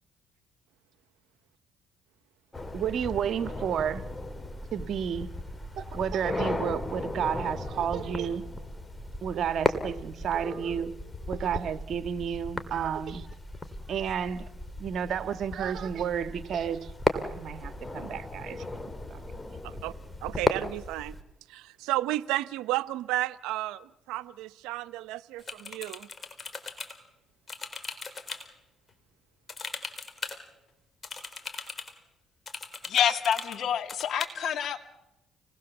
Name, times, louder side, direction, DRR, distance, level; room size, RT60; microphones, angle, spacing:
sound 1, 2.5-21.2, left 2 dB, 15° left, 2.9 m, -35 dB
voice 1, 2.7-4.0 4.7-5.3 5.8-8.4 9.2-10.9 11.3-13.3 13.9-14.4 14.8-18.6 19.1-19.2, right 8 dB, 60° right, 10 dB, 1.5 m, -31 dB
voice 2, 20.2-21.1 21.5-26.1, right 16 dB, 90° right, 14 dB, 0.8 m, -32 dB
sound 2, 25.4-26.9 27.5-28.4 29.5-30.4 31.0-31.9 32.5-33.6 33.9-34.3, left 4 dB, 35° left, 4.2 m, -38 dB
voice 3, 32.9-34.8, left 9 dB, 65° left, 8 dB, 2.3 m, -27 dB
29.5 x 20.0 x 7.3 m, 0.94 s
cardioid pair, 80°, 0 cm